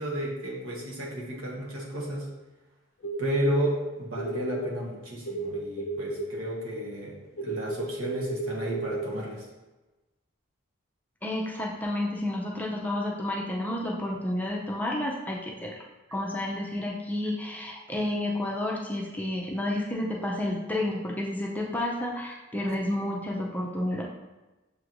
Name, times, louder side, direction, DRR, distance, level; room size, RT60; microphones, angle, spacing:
voice 1, 0.0-2.3 3.2-9.5 22.7-22.8, right 1 dB, 80° right, -3 dB, 1.2 m, -32 dB
sound 1, 3.0-3.7 4.2-4.7 5.3-6.3 7.4-9.1, right 2 dB, 70° left, 0.6 m, -32 dB
voice 2, 11.2-15.7 16.1-24.0, left 1 dB, 10° left, -3 dB, 0.5 m, -30 dB
6.8 x 3.0 x 2.6 m, 1.1 s
head